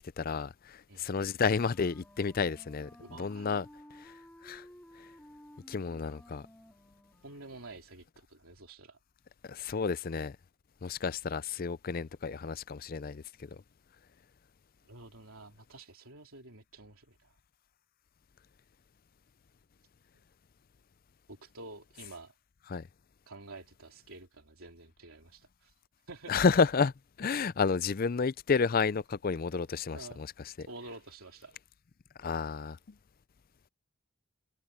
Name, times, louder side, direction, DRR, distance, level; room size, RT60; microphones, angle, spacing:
voice 1, 0.0-2.9 3.2-3.7 4.0-4.1 4.4-4.6 5.7-6.5 9.4-10.4 10.8-13.5 22.7-22.8 26.3-26.9 27.2-30.3 30.6-30.7 32.2-32.8, left 5 dB, 40° left, 0.4 m, -30 dB
Wind instrument woodwind instrument, 1.5-7.8, equal, 10° left, 3.9 m, -55 dB
voice 2, 3.0-3.5 7.2-9.0 14.8-17.4 21.3-22.3 23.3-25.7 26.1-26.3 29.9-30.3 30.6-31.6, right 2 dB, 70° right, 3.1 m, -49 dB
head